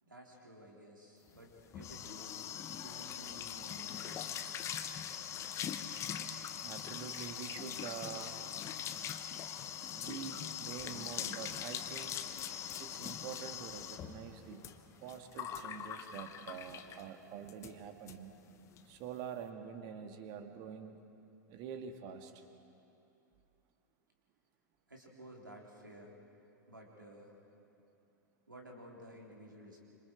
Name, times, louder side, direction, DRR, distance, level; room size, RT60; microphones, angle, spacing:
voice 1, 0.0-2.5 2.7-4.2 4.9-5.1 24.9-26.2 26.7-27.4 28.5-29.8, equal, 85° right, -1 dB, 3.7 m, -54 dB
sound 1, 1.4-17.1 17.5-17.7 18.1-18.2 18.5-18.8, left 9 dB, 30° left, 1.1 m, -42 dB
voice 2, 6.6-8.4 10.0-12.1 12.8-14.7 15.0-18.3 18.9-21.0 21.5-22.3, right 8 dB, 40° right, 6 dB, 1.8 m, -46 dB
26.5 x 26.5 x 4.7 m, 2.7 s
figure-of-eight pair, 95°, 10 cm